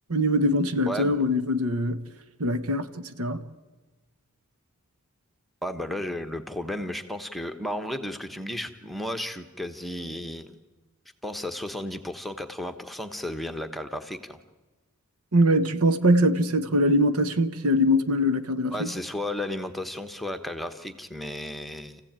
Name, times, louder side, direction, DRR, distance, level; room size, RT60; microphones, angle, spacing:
voice 1, 0.1-2.0 2.4-3.4 15.3-18.9, equal, 80° right, 1.3 m, -23 dB
voice 2, 0.9-1.2 5.6-10.6 11.2-14.4 18.7-22.0, left 1 dB, ahead, 1.1 m, -33 dB
28.0 x 15.5 x 8.9 m
head